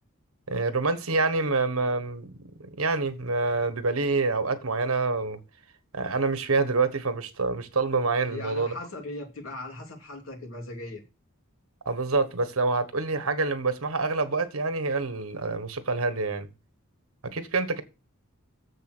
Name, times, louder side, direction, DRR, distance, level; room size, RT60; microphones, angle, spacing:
voice 1, 0.5-2.3 2.6-5.4 5.9-8.7 11.8-16.5 17.3-17.8, right 3 dB, 80° right, 1.4 m, -26 dB
voice 2, 8.2-11.0, left 2 dB, 70° left, 3.1 m, -38 dB
7.4 x 6.9 x 6.2 m
head